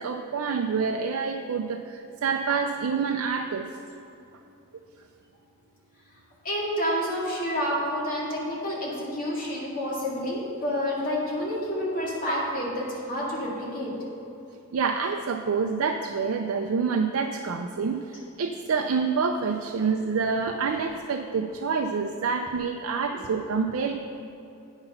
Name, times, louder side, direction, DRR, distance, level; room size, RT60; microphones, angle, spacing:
voice 1, 0.0-3.7 14.7-23.9, right 5 dB, 75° right, 4 dB, 0.4 m, -27 dB
voice 2, 6.4-13.9 23.1-23.2, equal, 40° left, -5 dB, 2.1 m, -29 dB
8.8 x 5.9 x 5.6 m, 2.7 s
head